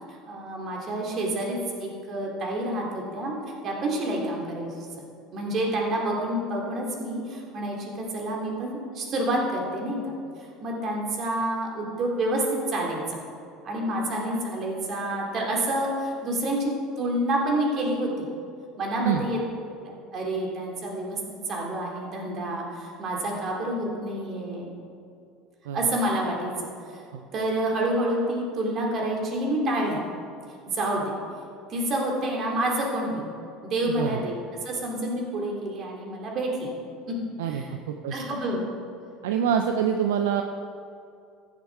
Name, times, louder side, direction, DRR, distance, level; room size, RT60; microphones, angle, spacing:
voice 1, 0.1-3.3 3.6-4.7 5.3-10.2 10.6-13.2 13.6-18.3 18.8-19.4 19.8-21.2 21.5-24.7 25.7-27.0 27.3-30.0 30.7-31.1 31.7-33.3 33.6-36.7 37.1-37.2 37.5-37.7 38.1-38.6, right 1 dB, 45° right, -1 dB, 3.1 m, -28 dB
voice 2, 33.9-34.2 37.4-38.1 39.2-40.4, right 8 dB, 75° right, 5 dB, 0.6 m, -26 dB
14.5 x 7.5 x 4.8 m, 2.4 s
hypercardioid pair, 70°, 0 cm